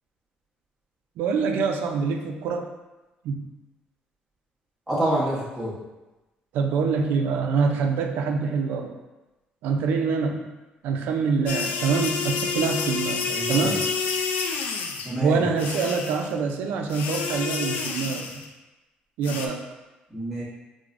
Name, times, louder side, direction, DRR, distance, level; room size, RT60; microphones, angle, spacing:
voice 1, 1.2-2.7 3.2-3.5 6.5-8.9 9.6-10.4 10.8-13.9 15.2-18.3 19.2-19.6, right 5 dB, 85° right, 3 dB, 0.4 m, -25 dB
voice 2, 4.9-5.8 13.3-13.7 15.0-15.4 20.1-20.4, right 1 dB, 5° right, -9 dB, 0.9 m, -27 dB
sound 1, 11.5-15.1 15.6-16.3 16.9-18.5 19.2-19.5, left 5 dB, 70° left, 0.3 m, -29 dB
4.6 x 2.1 x 2.4 m, 1.1 s
cardioid pair, 170°, 3 cm